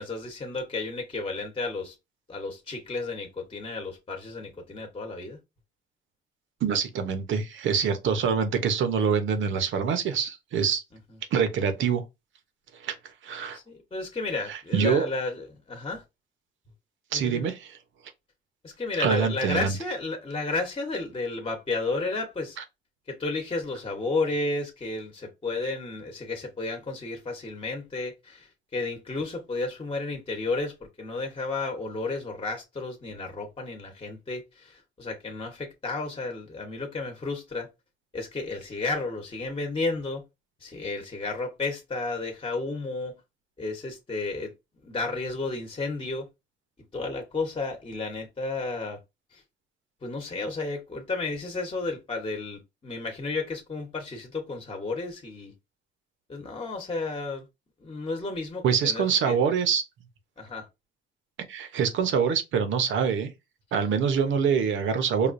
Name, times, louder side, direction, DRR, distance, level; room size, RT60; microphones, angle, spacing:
voice 1, 0.0-1.9 2.3-5.4 13.5-16.0 17.1-17.5 18.6-22.6 23.1-37.7 38.1-40.2 40.6-43.2 43.6-44.5 44.8-46.3 46.9-49.0 49.3-49.4 50.0-55.5 56.3-57.5 57.8-59.4 60.4-60.7, left 3 dB, 25° left, 1.0 m, -32 dB
voice 2, 6.6-10.8 11.3-12.0 12.8-13.0 13.2-13.6 14.5-15.1 17.1-17.7 19.0-19.8 58.6-59.8 61.5-63.3 63.7-65.3, right 6 dB, 75° right, 0.9 m, -25 dB
4.9 x 2.3 x 2.6 m
cardioid pair, 90°, 20 cm